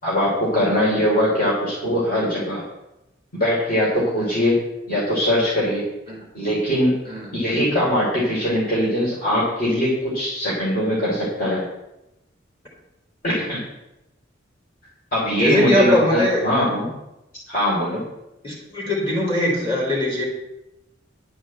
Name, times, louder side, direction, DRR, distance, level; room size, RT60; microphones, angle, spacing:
voice 1, 0.0-2.6 3.3-4.6 4.9-5.8 6.3-6.9 7.3-11.6 13.2-13.6 15.1-16.9 17.5-18.0, equal, 50° left, -6 dB, 3.8 m, -21 dB
voice 2, 15.4-16.4 18.4-20.2, left 1 dB, 25° left, -3 dB, 3.6 m, -21 dB
11.0 x 6.2 x 7.8 m, 0.91 s
head